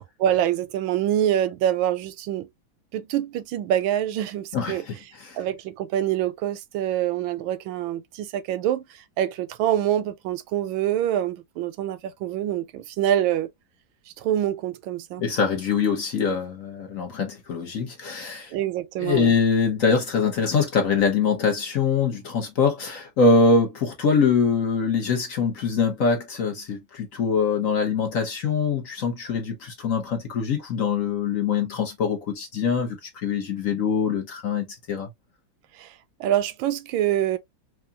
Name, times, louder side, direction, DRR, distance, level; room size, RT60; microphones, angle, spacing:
voice 1, 0.2-2.5 2.9-4.8 5.4-8.8 9.2-13.5 14.2-15.2 18.5-19.4 35.8-35.9 36.2-37.4, right 11 dB, 85° right, 1.4 m, -25 dB
voice 2, 4.5-4.9 5.2-5.4 15.2-18.5 19.0-35.1, left 5 dB, 55° left, 1.1 m, -23 dB
4.7 x 2.4 x 2.4 m
omnidirectional pair, 2.1 m